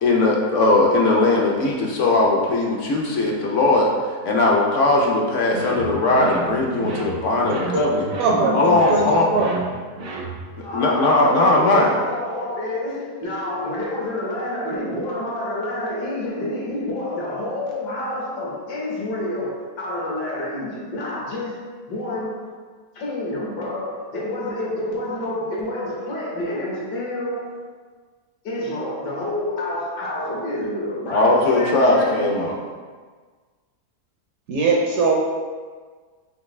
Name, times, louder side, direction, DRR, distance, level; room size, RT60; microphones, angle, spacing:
voice 1, 0.0-3.9 4.2-8.1 8.5-9.3 10.7-11.9 31.1-32.5, left 2 dB, 65° left, -1 dB, 0.8 m, -19 dB
sound 1, 5.5-10.6, right 4 dB, 85° right, 0.5 m, -32 dB
voice 2, 8.2-9.0 9.3-9.5 34.5-35.1, right 3 dB, 70° right, -2 dB, 0.9 m, -20 dB
voice 3, 10.6-21.6 21.9-22.5 23.0-27.6 28.4-32.4, left 1 dB, 80° left, -4 dB, 1.7 m, -28 dB
5.7 x 2.6 x 3.1 m, 1.5 s
omnidirectional pair, 1.8 m